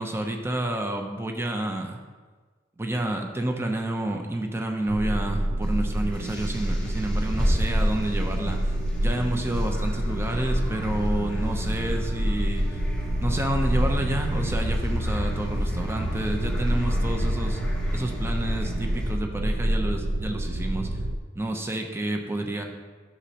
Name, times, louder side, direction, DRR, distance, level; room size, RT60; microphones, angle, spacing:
voice 1, 0.0-2.0 2.8-12.6 13.2-17.6 17.9-21.0 21.3-22.6, right 1 dB, 15° right, 3 dB, 0.6 m, -29 dB
sound 1, 4.9-21.2, right 1 dB, 60° right, 0.5 m, -28 dB
sound 2, 5.6-19.1, equal, 5° left, 1.1 m, -32 dB
11.5 x 6.2 x 2.9 m, 1.4 s
head